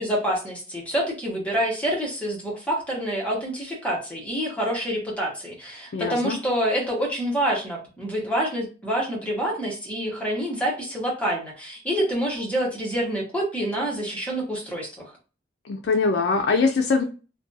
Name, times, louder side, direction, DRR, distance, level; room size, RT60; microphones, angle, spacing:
voice 1, 0.0-15.1, right 1 dB, 10° left, -3 dB, 0.9 m, -27 dB
voice 2, 5.9-6.4 15.6-17.0, left 4 dB, 75° left, 3 dB, 0.4 m, -22 dB
2.5 x 2.2 x 2.6 m, 0.35 s
head